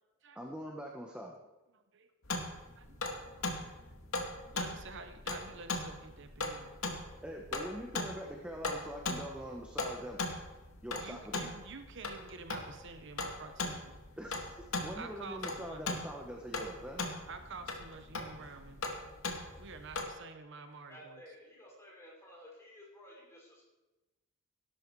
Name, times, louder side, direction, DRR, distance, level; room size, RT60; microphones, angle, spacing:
voice 1, 0.3-1.4 7.2-10.2 10.8-11.4 14.2-14.5 14.8-17.0, equal, 5° right, 0 dB, 1.3 m, -43 dB
voice 2, 1.7-2.1 2.5-3.1 3.4-4.0 4.5-7.2 11.0-14.0 15.0-16.0 17.3-18.9 19.6-21.2, right 4 dB, 60° right, 8 dB, 1.0 m, -49 dB
sound 1, 2.2-20.1, left 2 dB, 80° left, 2.2 m, -39 dB
voice 3, 20.9-23.6, equal, 15° left, -4 dB, 5.7 m, -54 dB
17.0 x 12.0 x 4.8 m, 1.1 s
head